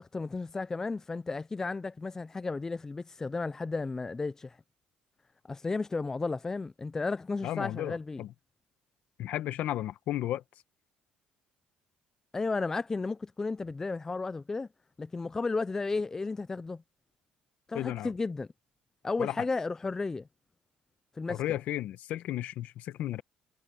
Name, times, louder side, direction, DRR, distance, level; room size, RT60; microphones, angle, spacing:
voice 1, 0.0-4.6 5.5-8.2 12.3-14.7 15.0-16.8 17.7-18.5 19.0-20.3 21.2-21.4, left 3 dB, 20° left, 0.4 m, -33 dB
voice 2, 7.4-8.3 9.2-10.4 17.7-18.1 19.2-19.3 21.3-23.2, left 13 dB, 65° left, 1.3 m, -34 dB
cardioid pair, 105°, 3 cm